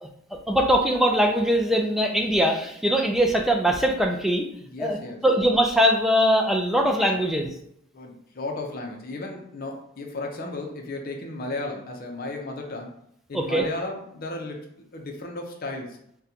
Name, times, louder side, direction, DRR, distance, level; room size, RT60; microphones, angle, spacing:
voice 1, 0.0-4.5 4.8-7.5 13.3-13.6, equal, ahead, 1 dB, 0.3 m, -22 dB
voice 2, 4.6-5.2 7.9-12.9 13.3-14.6 14.9-16.0, left 2 dB, 45° left, 2 dB, 0.6 m, -34 dB
3.8 x 2.2 x 2.8 m, 0.72 s
head